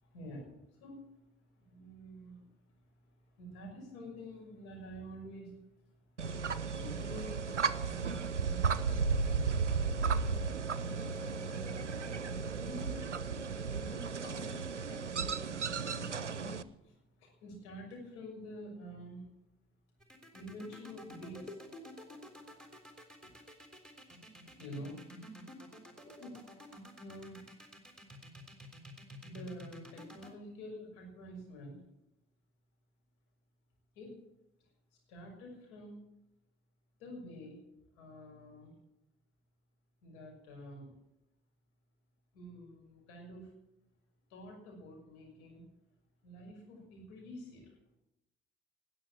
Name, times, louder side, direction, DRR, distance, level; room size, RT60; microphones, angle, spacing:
voice 1, 0.0-1.1 1.6-2.4 3.4-5.6 6.2-9.9 10.4-11.9 12.6-13.1 13.7-16.6 16.8-19.2 20.3-21.5 24.6-25.3 26.2-26.3 26.7-27.5 29.2-31.8 34.0-34.2 35.1-36.0 37.0-37.6 38.0-38.7 40.0-40.9 42.3-43.5 44.3-45.6 46.2-47.7, equal, 70° left, -1 dB, 6.1 m, -48 dB
sound 1, 6.2-16.6, right 5 dB, 90° right, 0.5 m, -34 dB
sound 2, 20.0-30.3, equal, ahead, 3.6 m, -50 dB
19.5 x 7.8 x 8.8 m, 0.86 s
figure-of-eight pair, 45°, 35 cm